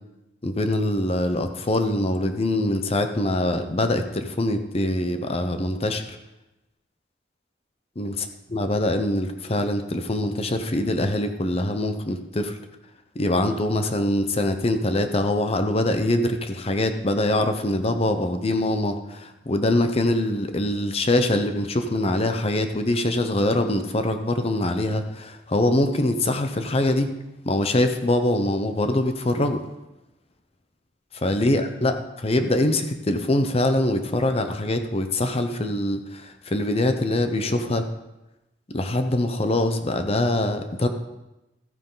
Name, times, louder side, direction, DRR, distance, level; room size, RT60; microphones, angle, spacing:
voice 1, 0.4-6.0 8.0-8.1 8.5-12.6 13.2-27.1 27.4-29.6 31.1-31.9 32.2-37.9 38.7-40.9, left 1 dB, 35° left, 7 dB, 0.8 m, -23 dB
13.5 x 9.3 x 3.9 m, 0.96 s
head